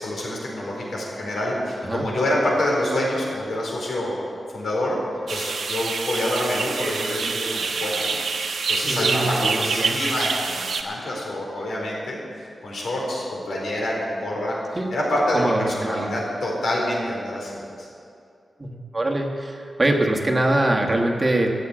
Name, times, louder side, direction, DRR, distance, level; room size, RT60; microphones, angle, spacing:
voice 1, 0.0-4.2 4.5-5.0 5.3-8.2 8.7-12.2 12.6-14.6 14.9-17.9, left 1 dB, 85° left, -3 dB, 4.4 m, -26 dB
sound 1, 5.3-10.8, right 4 dB, 85° right, 1.0 m, -26 dB
voice 2, 8.8-10.0 14.7-14.9 15.3-16.1 18.6-21.5, right 1 dB, 25° right, 1 dB, 1.3 m, -23 dB
14.0 x 8.3 x 8.5 m, 2.4 s
wide cardioid pair, 150°, 0 cm